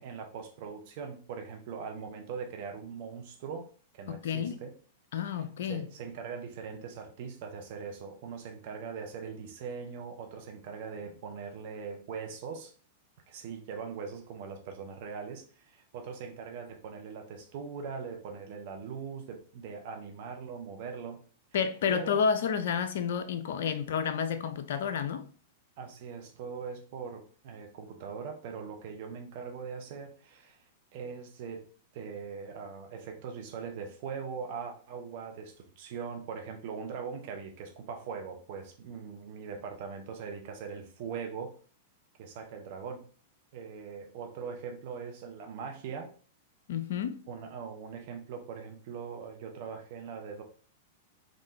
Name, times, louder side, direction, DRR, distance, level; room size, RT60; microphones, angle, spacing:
voice 1, 0.0-3.7 3.9-4.7 5.3-12.7 13.3-21.2 21.9-22.2 25.8-30.6 30.9-31.7 31.9-41.6 42.2-43.1 43.5-46.1 47.3-50.4, right 6 dB, 55° right, 0.7 m, -41 dB
voice 2, 4.1-4.6 5.1-5.9 21.5-25.2 46.7-47.2, left 7 dB, 65° left, 0.4 m, -30 dB
3.7 x 2.5 x 3.2 m
figure-of-eight pair, 100°, 0 cm